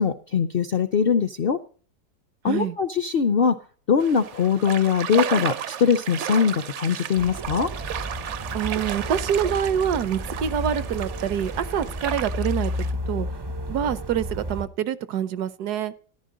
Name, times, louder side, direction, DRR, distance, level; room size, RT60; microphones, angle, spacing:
voice 1, 0.0-1.6 2.4-3.5 3.9-7.7, left 6 dB, 60° left, 12 dB, 0.6 m, -22 dB
voice 2, 2.5-2.8 8.5-13.3 13.7-15.9, right 9 dB, 75° right, 16 dB, 1.3 m, -26 dB
sound 1, 4.0-12.9, right 10 dB, 60° right, 0.8 m, -33 dB
sound 2, 7.2-14.7, left 1 dB, 40° right, 0.3 m, -32 dB
14.0 x 11.0 x 3.8 m, 0.43 s
omnidirectional pair, 1.8 m